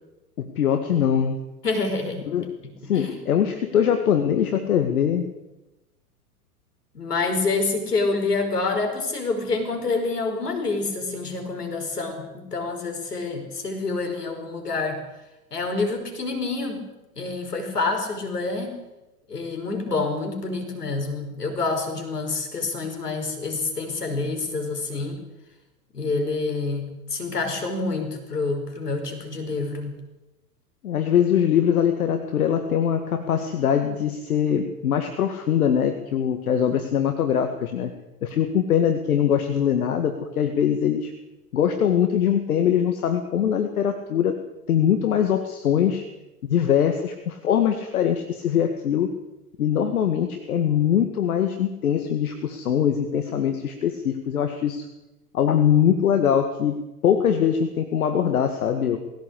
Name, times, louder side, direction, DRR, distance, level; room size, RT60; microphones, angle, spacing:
voice 1, 0.4-1.4 2.3-2.6 2.9-5.3 30.8-37.9 38.2-41.1 41.5-44.4 44.7-46.0 46.4-49.1 49.6-54.9 55.3-59.0, left 9 dB, 65° left, 7 dB, 2.1 m, -22 dB
voice 2, 1.6-2.3 2.9-3.2 6.9-15.0 15.5-16.8 17.2-18.8 19.3-25.2 25.9-30.0, left 3 dB, 80° left, 5 dB, 5.4 m, -27 dB
20.5 x 17.0 x 8.4 m, 1.0 s
figure-of-eight pair, 100°, 46 cm